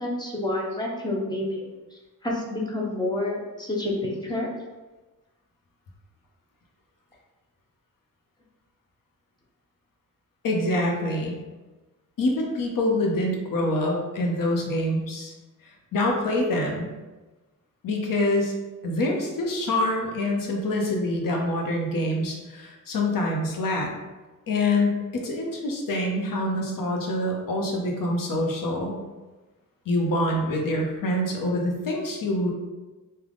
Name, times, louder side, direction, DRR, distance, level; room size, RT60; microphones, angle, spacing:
voice 1, 0.0-4.5, left 1 dB, 15° left, -2 dB, 0.5 m, -29 dB
voice 2, 10.4-11.3 12.2-15.3 15.9-16.8 17.8-18.5 18.8-23.9 24.5-29.0 29.9-32.5, left 1 dB, 75° left, 0 dB, 0.8 m, -25 dB
3.7 x 2.2 x 3.4 m, 1.2 s
wide cardioid pair, 175°, 33 cm